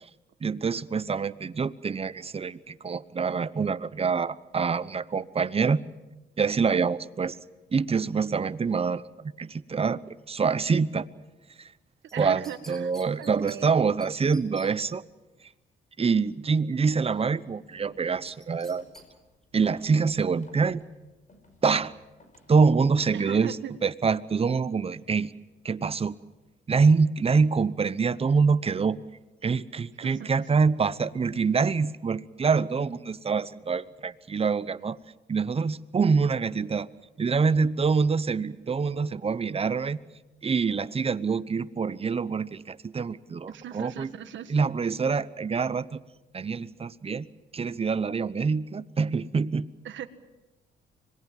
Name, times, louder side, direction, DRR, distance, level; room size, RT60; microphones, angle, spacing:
voice 1, 0.4-5.8 6.4-7.4 7.7-10.0 10.3-11.1 12.2-15.0 16.0-18.8 19.5-20.8 21.6-21.9 22.5-23.6 23.8-25.3 25.6-26.2 26.7-29.0 29.4-35.0 35.3-36.9 37.2-40.0 40.4-44.1 44.5-46.0 46.3-47.3 47.5-49.7, right 5 dB, 30° right, 16 dB, 0.9 m, -25 dB
sound 1, 12.1-13.6 14.0-14.1 14.3-14.7 18.3-19.1 19.4-19.5, right 1 dB, ahead, 4.3 m, -49 dB
voice 2, 12.1-12.9 13.2-13.8 23.1-23.7 30.0-30.6 43.5-44.5 49.8-50.1, right 10 dB, 70° right, 11 dB, 1.6 m, -39 dB
sound 2, 17.6-22.8, left 2 dB, 40° left, 5.6 m, -58 dB
25.5 x 21.0 x 7.5 m, 1.1 s
cardioid pair, 90°, 20 cm